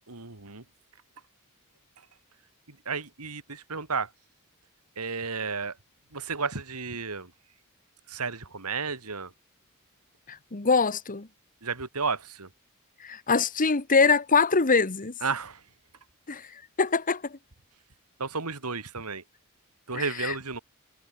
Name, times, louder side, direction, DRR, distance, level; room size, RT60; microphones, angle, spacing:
voice 1, 0.1-0.6 2.7-4.1 5.0-5.8 6.1-7.3 8.1-9.3 11.6-12.5 15.2-15.6 18.2-19.2 19.9-20.6, right 4 dB, 90° right, 2.9 m, -32 dB
voice 2, 10.3-11.3 13.0-15.1 16.3-16.5 16.8-17.4 19.9-20.3, left 4 dB, 40° left, 1.3 m, -24 dB
head